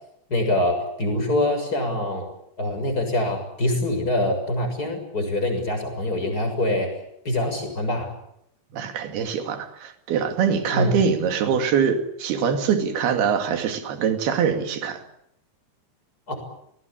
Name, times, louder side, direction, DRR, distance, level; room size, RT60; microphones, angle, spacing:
voice 1, 0.3-2.3 2.6-6.9 7.2-8.1 10.7-11.0 16.3-16.4, left 1 dB, 20° left, 6.9 m, -24 dB
voice 2, 8.7-15.0, right 7 dB, 60° right, 4.1 m, -23 dB
29.0 x 20.0 x 8.7 m
omnidirectional pair, 5.4 m